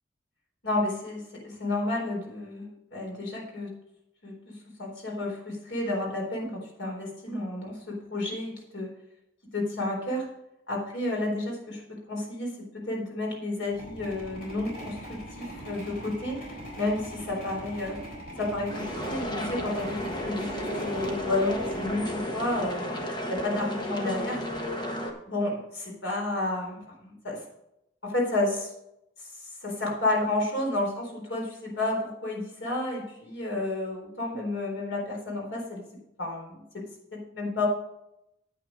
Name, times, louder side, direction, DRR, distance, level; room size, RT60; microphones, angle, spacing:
voice 1, 0.6-3.7 4.2-4.3 4.8-8.9 9.5-10.3 10.7-11.8 12.1-16.4 16.8-18.0 18.4-23.0 23.3-24.4 25.3-27.4 28.0-28.7 29.2-29.3 29.6-35.8 36.2-37.7, left 2 dB, 90° left, -1 dB, 4.1 m, -31 dB
sound 1, 13.6-23.0, right 1 dB, 50° left, 4.1 m, -41 dB
sound 2, 18.7-25.1, equal, 25° left, 1.3 m, -33 dB
9.1 x 8.9 x 5.2 m, 0.83 s
head